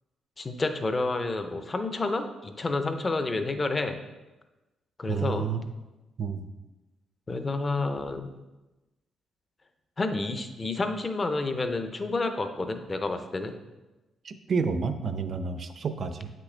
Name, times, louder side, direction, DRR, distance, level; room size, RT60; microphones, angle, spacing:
voice 1, 0.4-4.0 5.0-5.4 7.3-8.3 10.0-13.5, left 3 dB, 20° left, 7 dB, 0.5 m, -29 dB
voice 2, 5.1-5.7 6.2-6.5 14.2-16.3, right 5 dB, 40° right, 9 dB, 0.5 m, -30 dB
8.2 x 6.1 x 3.3 m, 1.1 s
cardioid pair, 155°, 0 cm